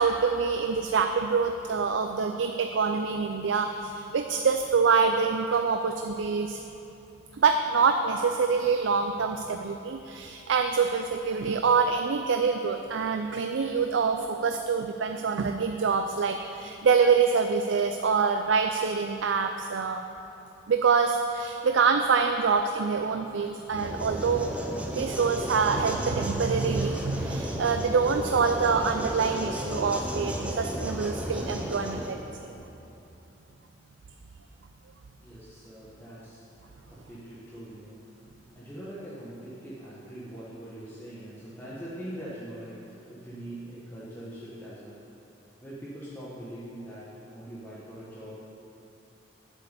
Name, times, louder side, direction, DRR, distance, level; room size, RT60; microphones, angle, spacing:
voice 1, 0.0-6.6 7.4-20.0 20.7-24.5 24.9-32.2 32.4-32.5, right 5 dB, 75° right, 6 dB, 0.4 m, -25 dB
sound 1, 23.7-32.1, right 1 dB, 5° right, 0.7 m, -33 dB
voice 2, 35.2-36.4 36.9-38.0 38.5-45.0 45.6-48.4, right 1 dB, 10° left, -9 dB, 1.3 m, -42 dB
7.9 x 6.7 x 8.2 m, 3.0 s
head